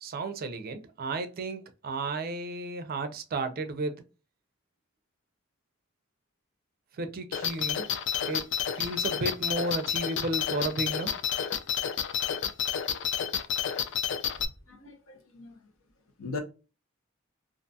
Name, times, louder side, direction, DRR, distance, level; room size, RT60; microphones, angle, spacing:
voice 1, 0.0-4.0 7.0-7.9 8.3-8.4 8.7-11.1, right 2 dB, 45° right, 0.4 m, -33 dB
sound 1, 7.3-14.5, left 8 dB, 60° left, 0.3 m, -30 dB
voice 2, 14.7-15.6 16.2-16.4, left 4 dB, 80° left, 0.7 m, -39 dB
2.5 x 2.2 x 2.6 m
head